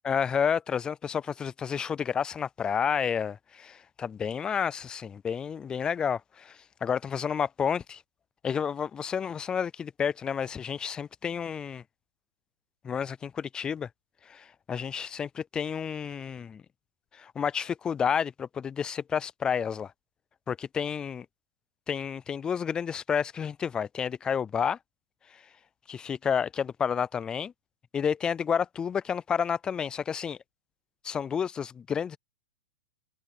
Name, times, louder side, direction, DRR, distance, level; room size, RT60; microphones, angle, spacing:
voice 1, 0.0-8.0 8.4-11.8 12.8-13.9 14.3-16.6 17.1-19.9 20.5-21.3 21.9-24.8 25.3-25.4 25.9-27.5 27.9-30.4 31.0-32.2, left 7 dB, 10° left, 0.4 m, -30 dB
supercardioid pair, 155°, 6 cm